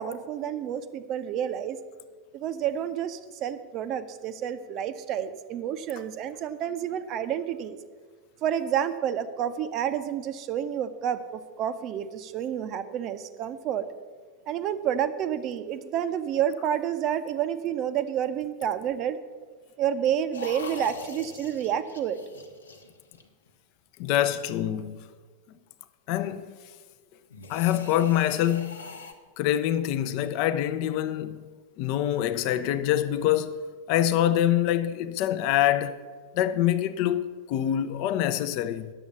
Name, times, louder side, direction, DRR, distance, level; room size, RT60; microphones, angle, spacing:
voice 1, 0.0-1.8 2.3-7.8 8.4-13.8 14.5-19.2 19.8-22.2, right 9 dB, 35° right, 0.7 m, -29 dB
sound 1, 20.3-23.5 27.3-29.1, left 4 dB, 75° left, 1.0 m, -42 dB
voice 2, 24.0-25.0 26.1-26.5 27.5-28.9 29.4-31.4 31.8-33.6 33.9-36.0 36.3-38.9, left 12 dB, 45° left, 0.6 m, -25 dB
10.0 x 7.1 x 7.1 m
figure-of-eight pair, 90°, 0 cm